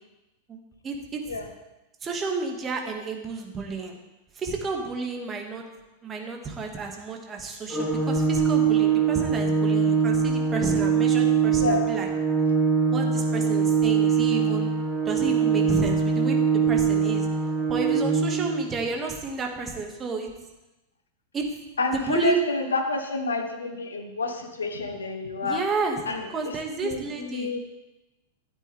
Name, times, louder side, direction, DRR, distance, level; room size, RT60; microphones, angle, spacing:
voice 1, 0.8-1.2 2.0-4.0 4.4-5.6 6.0-12.1 12.9-14.7 15.1-16.4 16.7-17.3 17.7-20.3 21.3-21.5 21.8-22.5 25.4-26.0 26.3-27.5, right 4 dB, 25° right, 2 dB, 2.0 m, -31 dB
Organ, 7.7-18.7, right 6 dB, 5° left, 1.8 m, -23 dB
voice 2, 21.8-25.6 26.1-26.5 26.8-27.6, left 3 dB, 80° left, 4 dB, 1.3 m, -29 dB
12.5 x 9.1 x 3.5 m, 1.0 s
figure-of-eight pair, 95°, 0 cm